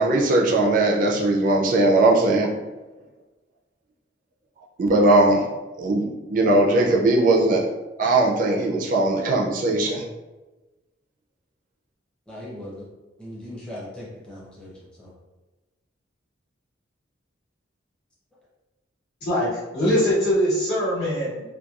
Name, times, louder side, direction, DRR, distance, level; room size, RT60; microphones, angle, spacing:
voice 1, 0.0-2.5 4.8-5.5 5.8-7.7 8.0-10.0, right 2 dB, 45° right, -1 dB, 0.3 m, -19 dB
voice 2, 12.3-12.9 13.2-14.7 15.0-15.1, left 1 dB, 5° left, -7 dB, 0.5 m, -38 dB
voice 3, 19.2-21.4, equal, 60° left, -8 dB, 1.2 m, -22 dB
2.8 x 2.2 x 2.3 m, 1.1 s
head